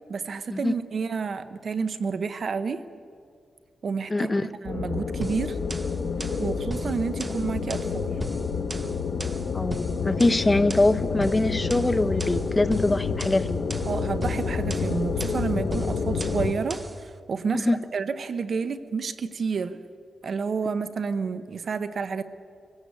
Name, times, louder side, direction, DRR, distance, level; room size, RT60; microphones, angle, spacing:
voice 1, 0.1-2.8 3.8-4.3 4.6-5.6 6.4-8.2 13.8-19.8 20.2-22.2, right 5 dB, 55° right, 12 dB, 0.9 m, -30 dB
voice 2, 4.1-4.5 9.5-13.6 17.5-17.8, left 2 dB, 20° left, 12 dB, 0.6 m, -23 dB
sound 1, 4.6-16.5, left 5 dB, 65° left, 1.3 m, -29 dB
sound 2, 5.2-17.0, right 2 dB, 15° right, 0.7 m, -39 dB
23.0 x 16.5 x 8.4 m, 2.3 s
wide cardioid pair, 130°, 0 cm